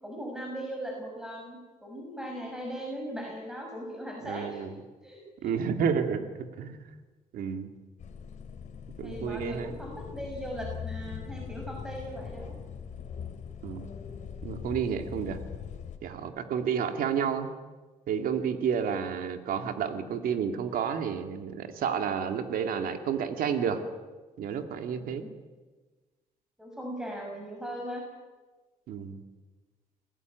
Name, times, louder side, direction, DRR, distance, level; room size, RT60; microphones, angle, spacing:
voice 1, 0.0-4.8 5.0-5.6 9.0-12.5 24.9-25.3 26.6-28.0, equal, 5° right, 0 dB, 6.0 m, -39 dB
voice 2, 4.2-4.7 5.4-6.2 6.6-6.8 7.3-7.7 9.0-9.7 13.6-13.8 14.4-15.4 16.0-17.5 18.1-23.8 24.4-25.2 28.9-29.2, right 7 dB, 85° right, 7 dB, 2.4 m, -30 dB
sound 1, 8.0-16.0, left 7 dB, 55° left, 3.2 m, -41 dB
27.0 x 19.0 x 9.4 m, 1.3 s
cardioid pair, 105°, 14 cm